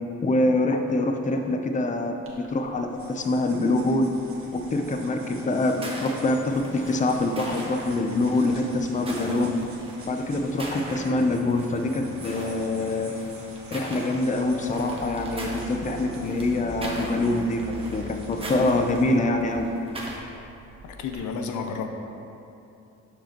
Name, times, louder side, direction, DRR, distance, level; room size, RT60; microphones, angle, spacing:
voice 1, 0.2-2.1 2.5-4.1 4.5-9.5 10.1-13.1 13.7-17.6 17.9-19.7, left 2 dB, 25° left, 4 dB, 0.6 m, -25 dB
sound 1, 2.2-21.1, right 2 dB, 45° right, 1.5 m, -47 dB
sound 2, 5.6-20.2, right 1 dB, 20° right, 1.3 m, -40 dB
sound 3, 14.4-19.6, equal, 85° right, 0.9 m, -40 dB
voice 2, 20.8-21.9, left 5 dB, 75° left, 5 dB, 0.7 m, -31 dB
12.5 x 5.2 x 3.0 m, 2.8 s
cardioid pair, 90°, 30 cm